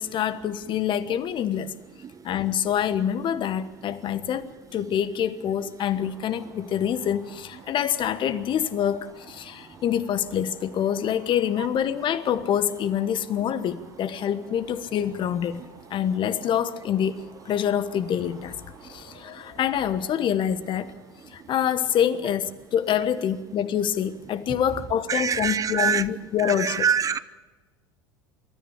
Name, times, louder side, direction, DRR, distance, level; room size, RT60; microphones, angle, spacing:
voice 1, 0.0-1.7 2.2-15.6 15.9-18.5 18.9-20.9 21.3-26.8, left 9 dB, 40° left, 14 dB, 1.2 m, -26 dB
sound 1, 6.0-22.7, right 1 dB, 75° right, 6.6 m, -52 dB
voice 2, 18.9-19.4 24.5-24.6 25.1-26.1 26.4-27.2, right 7 dB, 25° right, 16 dB, 0.7 m, -26 dB
26.0 x 13.5 x 8.5 m, 1.2 s
figure-of-eight pair, 75°, 13 cm